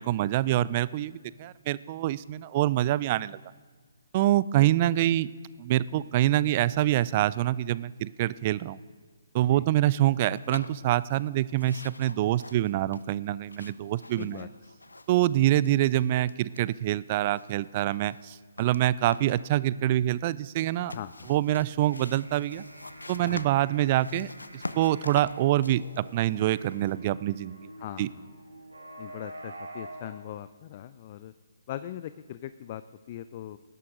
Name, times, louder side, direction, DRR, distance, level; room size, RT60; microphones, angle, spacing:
voice 1, 0.0-3.4 4.1-5.3 5.6-8.8 9.3-14.4 15.1-20.9 21.3-22.6 23.1-27.7 28.0-28.1, right 14 dB, 35° right, 19 dB, 0.3 m, -26 dB
voice 2, 4.6-4.9 9.4-9.7 14.2-14.5 15.3-15.4 20.9-21.3 23.2-23.5 27.8-28.3 29.0-31.3 31.7-32.8 33.1-33.6, left 12 dB, 35° left, 14 dB, 0.4 m, -40 dB
sound 1, 10.3-11.3 11.6-15.3 15.6-17.0 17.3-19.5 20.6-26.9, left 2 dB, 80° left, 0.6 m, -44 dB
sound 2, 21.7-30.1, right 1 dB, 80° right, 2.4 m, -47 dB
20.0 x 11.0 x 3.7 m, 1.5 s
figure-of-eight pair, 135°, 0 cm